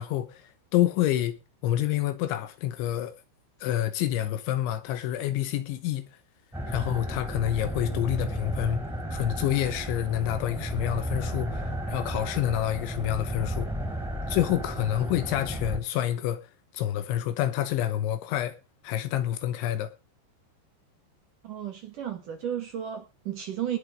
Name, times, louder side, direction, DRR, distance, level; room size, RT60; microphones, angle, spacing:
voice 1, 0.0-1.4 1.6-3.1 3.6-6.1 6.7-8.8 9.1-13.7 14.3-16.5 16.7-18.6 18.8-19.9, left 12 dB, 75° left, 3.2 m, -28 dB
sound 1, 6.5-15.8, equal, ahead, 3.1 m, -33 dB
voice 2, 21.4-23.8, right 10 dB, 55° right, 2.5 m, -33 dB
19.0 x 7.0 x 5.0 m
omnidirectional pair, 5.6 m